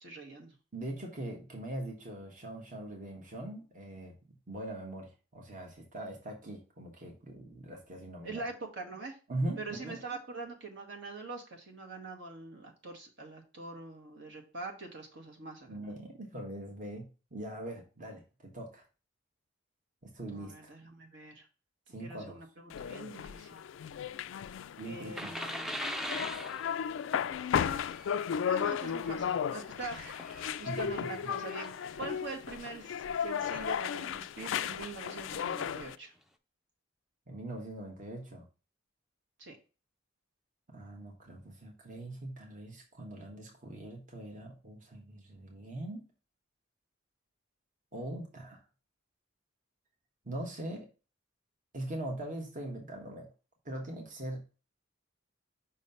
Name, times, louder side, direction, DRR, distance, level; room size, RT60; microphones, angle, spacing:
voice 1, 0.0-0.5 8.2-9.2 9.6-15.9 20.3-21.5 22.0-23.6 24.8-26.2 28.5-36.1 39.4-39.6, right 3 dB, 65° right, 1 dB, 1.4 m, -44 dB
voice 2, 0.7-4.1 4.5-8.5 9.3-10.0 15.7-18.8 20.0-20.7 21.9-22.4 24.8-25.3 30.7-31.3 37.3-38.4 40.7-46.1 47.9-48.6 50.2-50.9 51.7-53.3 53.6-54.4, right 1 dB, 40° right, 1 dB, 1.2 m, -41 dB
sound 1, 22.7-36.0, left 8 dB, 70° left, 0.3 m, -35 dB
sound 2, 25.1-32.0 32.7-32.8 33.5-34.2 35.1-35.2 35.6-35.7, equal, ahead, 0.4 m, -43 dB
5.6 x 3.1 x 5.3 m, 0.33 s
head